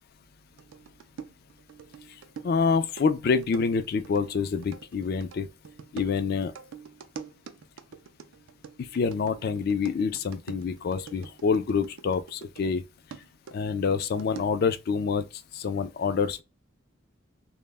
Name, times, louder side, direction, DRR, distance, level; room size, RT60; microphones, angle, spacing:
sound 1, 0.6-12.8 13.1-14.7, right 6 dB, 80° right, 0.4 m, -46 dB
voice 1, 2.4-5.5 5.9-6.5 8.8-12.8 13.5-15.3 15.5-16.4, left 5 dB, 50° left, 0.3 m, -27 dB
2.1 x 2.0 x 3.3 m
head